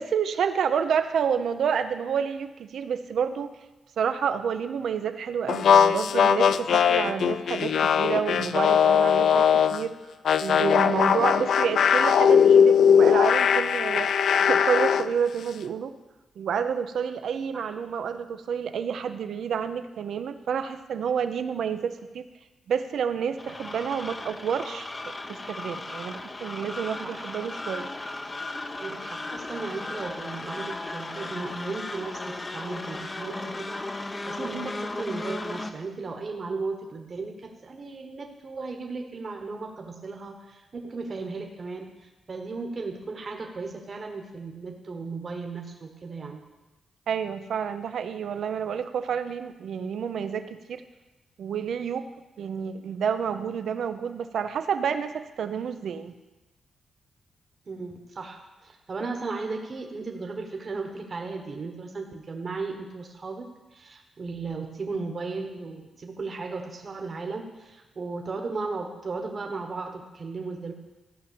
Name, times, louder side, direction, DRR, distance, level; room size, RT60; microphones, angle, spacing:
voice 1, 0.0-3.5 4.0-10.0 10.4-15.9 16.4-22.2 22.7-24.9 25.3-27.9 34.4-34.7 47.1-50.8 51.4-52.1 52.4-56.1, right 7 dB, 75° right, 10 dB, 0.7 m, -29 dB
sound 1, 5.5-9.8 10.3-15.1, left 7 dB, 70° left, 0.4 m, -20 dB
sound 2, 23.4-35.7, left 2 dB, 25° left, 0.8 m, -36 dB
voice 2, 28.8-46.4 57.7-70.7, right 3 dB, 40° right, 2 dB, 1.3 m, -36 dB
14.5 x 5.8 x 8.5 m, 1.1 s
wide cardioid pair, 125°, 0 cm